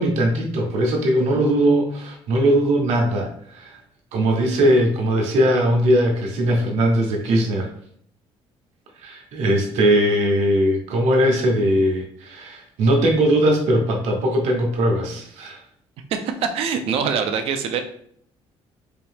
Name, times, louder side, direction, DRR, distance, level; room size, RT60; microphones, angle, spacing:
voice 1, 0.0-3.8 4.1-7.7 9.0-15.6, right 1 dB, 90° right, 1 dB, 1.0 m, -20 dB
voice 2, 16.1-17.8, right 6 dB, 65° right, 7 dB, 0.5 m, -24 dB
4.2 x 2.7 x 3.5 m, 0.65 s
cardioid pair, 180°, 11 cm